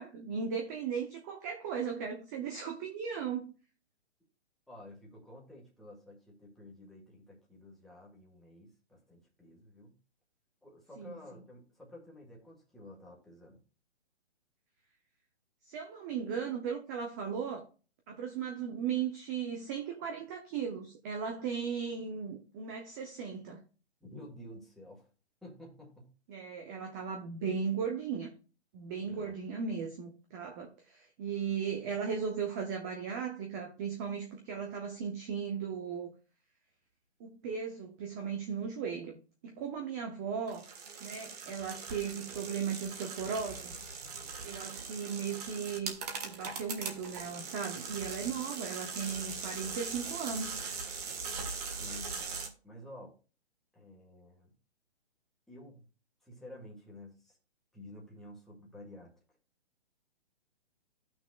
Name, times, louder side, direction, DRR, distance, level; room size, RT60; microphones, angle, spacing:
voice 1, 0.0-3.5 11.0-11.1 15.6-17.6 18.1-23.6 26.3-28.3 28.7-36.1 37.2-40.6 41.0-43.7 44.4-46.0 46.2-50.6, right 6 dB, 15° right, 0.6 m, -37 dB
voice 2, 4.7-10.0 10.6-13.6 24.0-25.1 25.4-26.1 29.1-29.3 51.7-52.2 52.6-53.1 53.7-54.5 55.5-55.8 56.2-57.4 57.7-59.1, left 1 dB, ahead, 1.6 m, -51 dB
sound 1, 40.5-52.5, right 5 dB, 35° right, 1.6 m, -41 dB
15.0 x 6.2 x 2.4 m
hypercardioid pair, 155°, 34 cm